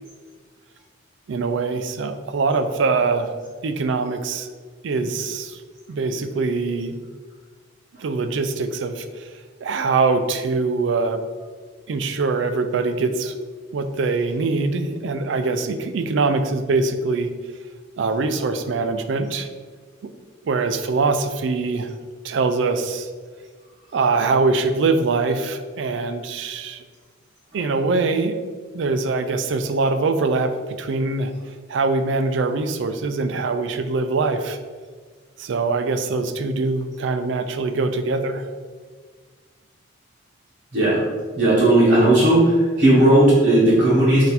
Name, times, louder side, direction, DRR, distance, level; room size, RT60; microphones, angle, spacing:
voice 1, 1.3-3.3 3.6-4.5 4.8-5.6 5.9-7.0 8.0-9.3 9.6-11.2 11.9-13.4 13.7-17.3 18.0-19.5 20.4-21.9 22.2-23.1 23.9-26.8 27.5-28.4 28.7-31.3 31.7-34.6 35.4-38.5, right 3 dB, 70° right, 9 dB, 0.3 m, -23 dB
voice 2, 40.7-41.0 41.4-44.3, right 1 dB, 40° right, -9 dB, 1.0 m, -15 dB
4.0 x 2.6 x 4.1 m, 1.5 s
head